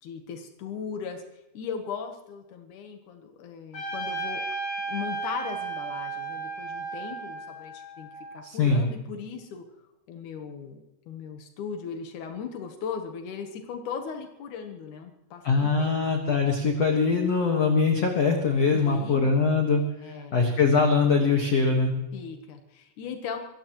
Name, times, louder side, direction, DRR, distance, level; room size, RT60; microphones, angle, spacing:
voice 1, 0.0-4.4 4.9-9.6 10.1-16.0 18.7-19.4 20.0-20.4 22.1-23.4, left 6 dB, 85° left, 5 dB, 1.7 m, -38 dB
Trumpet, 3.7-8.4, right 3 dB, 30° left, 5.4 m, -34 dB
voice 2, 8.4-8.8 15.4-21.9, left 4 dB, 70° left, 2 dB, 1.5 m, -23 dB
25.0 x 16.0 x 3.1 m, 0.94 s
omnidirectional pair, 5.5 m